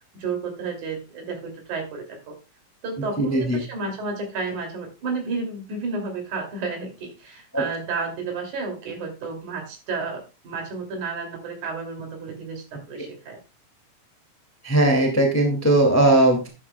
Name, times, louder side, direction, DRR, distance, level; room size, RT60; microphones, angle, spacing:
voice 1, 0.0-2.4 2.8-13.4, right 4 dB, 65° right, 3 dB, 4.1 m, -32 dB
voice 2, 3.2-3.6 7.5-7.6 14.6-16.5, right 1 dB, 5° left, 1 dB, 1.3 m, -18 dB
12.0 x 10.0 x 2.2 m, 0.27 s
omnidirectional pair, 3.8 m